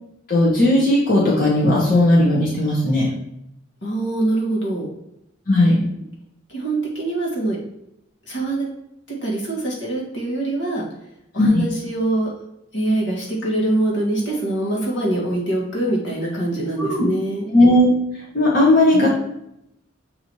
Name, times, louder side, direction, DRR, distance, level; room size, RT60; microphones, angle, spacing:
voice 1, 0.3-3.1 5.5-5.8 11.4-11.6 16.8-16.9 17.5-17.9 18.3-19.1, left 1 dB, 45° left, -6 dB, 1.3 m, -16 dB
voice 2, 3.8-4.9 6.5-7.6 8.3-8.7 9.2-10.8 11.3-12.3 12.7-17.5 18.9-19.1, right 2 dB, 65° left, -3 dB, 1.8 m, -23 dB
7.4 x 2.9 x 4.6 m, 0.80 s
head